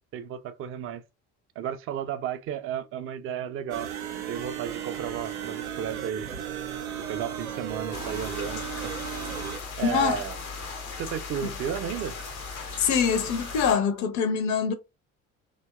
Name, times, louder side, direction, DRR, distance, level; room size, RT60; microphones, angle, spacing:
voice 1, 0.1-1.0 1.6-3.9 4.3-6.3 7.0-9.0 9.8-10.4 11.0-12.2, right 9 dB, 35° right, 0.4 m, -33 dB
sound 1, 3.7-9.6, right 9 dB, 85° right, 0.5 m, -35 dB
sound 2, 7.9-13.8, left 4 dB, 80° left, 0.7 m, -37 dB
voice 2, 9.8-10.2 11.4-11.5 12.8-14.7, left 6 dB, 45° left, 0.5 m, -24 dB
2.7 x 2.1 x 2.2 m
figure-of-eight pair, 55°, 42 cm